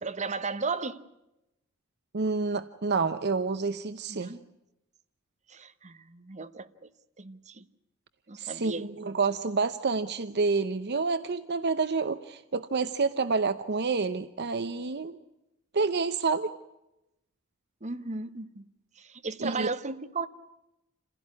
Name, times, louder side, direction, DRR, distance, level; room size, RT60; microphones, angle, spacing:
voice 1, 0.0-1.0 4.2-4.4 5.5-6.7 7.2-7.6 8.3-9.1 17.8-18.6 19.2-20.3, right 4 dB, 35° right, 1.2 m, -35 dB
voice 2, 2.1-4.3 8.4-15.2 15.7-16.5 19.4-19.7, right 4 dB, 55° right, 0.9 m, -28 dB
28.0 x 16.0 x 9.6 m
head